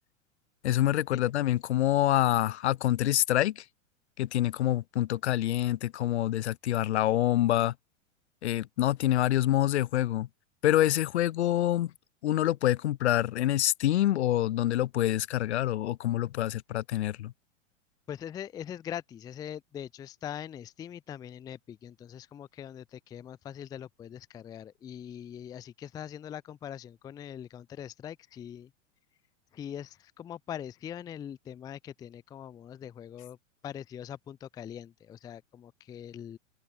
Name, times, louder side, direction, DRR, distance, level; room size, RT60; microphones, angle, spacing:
voice 1, 0.6-3.6 4.2-7.7 8.4-10.3 10.6-11.9 12.2-17.3, left 13 dB, 55° left, 0.8 m, -26 dB
voice 2, 18.1-28.7 29.5-33.4 33.6-36.4, left 9 dB, 10° left, 0.5 m, -42 dB
figure-of-eight pair, 95°, 39 cm